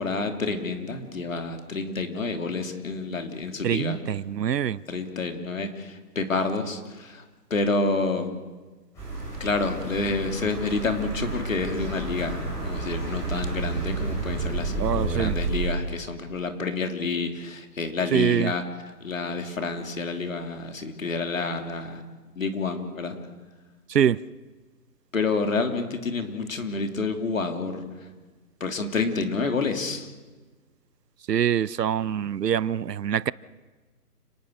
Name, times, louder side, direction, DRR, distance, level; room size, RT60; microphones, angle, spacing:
voice 1, 0.0-4.0 4.9-7.2 7.5-8.3 9.4-18.6 19.0-22.0 22.3-23.2 25.1-27.8 28.6-30.1, left 3 dB, 55° left, 3.2 m, -29 dB
voice 2, 3.6-4.8 14.8-15.3 18.1-18.5 23.9-24.2 31.3-33.3, right 9 dB, 85° right, 0.8 m, -24 dB
sound 1, 9.0-15.7, right 3 dB, 5° left, 5.6 m, -31 dB
30.0 x 19.5 x 6.5 m
hypercardioid pair, 180°, 47 cm